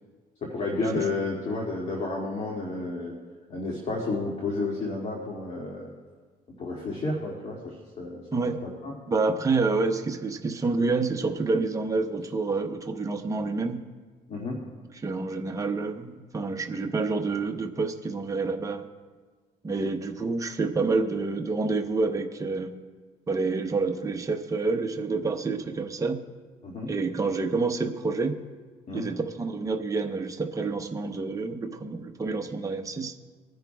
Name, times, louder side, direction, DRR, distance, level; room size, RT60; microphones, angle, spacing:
voice 1, 0.4-3.1 3.5-5.9 6.6-8.9 14.3-14.6 26.6-26.9 28.9-29.0, left 3 dB, 45° left, -2 dB, 2.2 m, -31 dB
voice 2, 9.1-13.8 15.0-18.9 19.6-22.7 23.3-26.2 26.9-28.4 28.9-33.1, right 3 dB, 20° right, 3 dB, 0.9 m, -28 dB
22.5 x 10.5 x 2.3 m, 1.4 s
cardioid pair, 110°, 17 cm